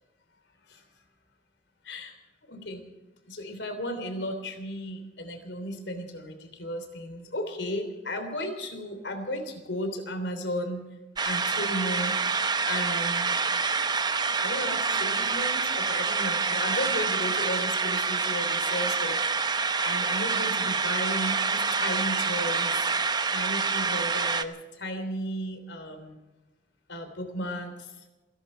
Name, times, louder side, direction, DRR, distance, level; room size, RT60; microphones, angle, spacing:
voice 1, 2.4-2.8 3.2-10.8 11.2-12.2 12.7-13.3 14.4-22.8 23.3-26.2 26.9-27.9, equal, 75° left, 8 dB, 3.3 m, -34 dB
sound 1, 11.2-24.4, right 4 dB, 25° right, 0.8 m, -27 dB
28.5 x 11.0 x 4.5 m, 1.1 s
head